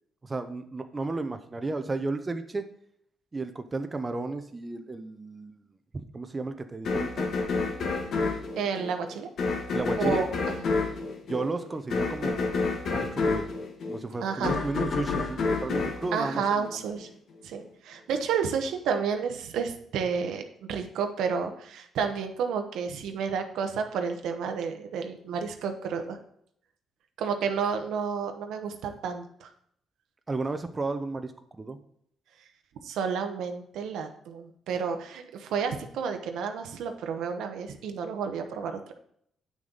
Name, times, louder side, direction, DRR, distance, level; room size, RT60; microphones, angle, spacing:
voice 1, 0.2-2.6 3.3-5.6 6.1-8.1 9.7-10.2 11.3-13.5 13.9-16.7 30.3-31.8, right 3 dB, 25° right, 7 dB, 0.7 m, -33 dB
sound 1, 6.9-17.1, left 4 dB, 65° left, 1.4 m, -29 dB
voice 2, 8.6-9.3 10.0-10.3 14.2-14.6 16.1-17.1 17.4-20.4 20.7-26.2 27.2-29.5 32.8-38.9, right 6 dB, 80° right, 6 dB, 1.0 m, -31 dB
8.6 x 6.3 x 4.0 m, 0.69 s
cardioid pair, 90°, 0 cm